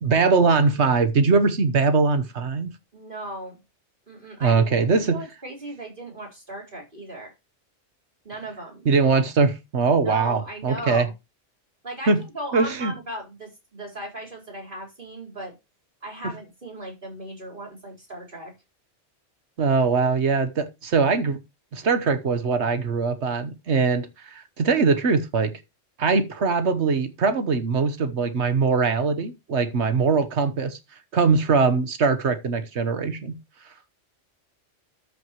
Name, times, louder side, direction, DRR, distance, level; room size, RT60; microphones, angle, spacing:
voice 1, 0.0-2.7 4.4-5.2 8.8-11.1 12.1-12.2 12.5-12.9 19.6-21.4 21.7-25.5 26.0-30.8 31.1-33.4, right 4 dB, 65° right, 1.4 m, -21 dB
voice 2, 2.9-3.6 4.1-7.3 8.2-8.9 10.0-11.1 11.8-15.5 16.0-18.5, right 1 dB, 45° right, 4.6 m, -37 dB
13.0 x 6.0 x 3.1 m
omnidirectional pair, 1.3 m